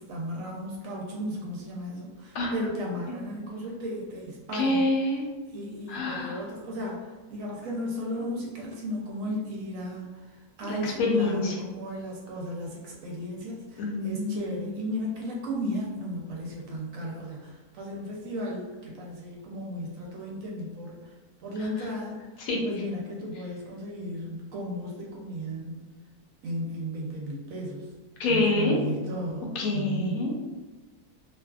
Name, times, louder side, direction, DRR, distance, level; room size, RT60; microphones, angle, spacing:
voice 1, 0.0-4.8 5.5-10.1 10.6-21.0 21.4-22.2 22.6-25.9 26.4-27.9 28.3-30.3, equal, 70° right, -2 dB, 0.9 m, -35 dB
voice 2, 4.5-5.2 5.9-6.4 10.7-11.6 13.8-14.6 21.6-21.9 22.4-22.6 28.2-28.8 29.5-30.4, left 2 dB, 70° left, -1 dB, 1.0 m, -27 dB
2.6 x 2.4 x 2.3 m, 1.3 s
omnidirectional pair, 1.6 m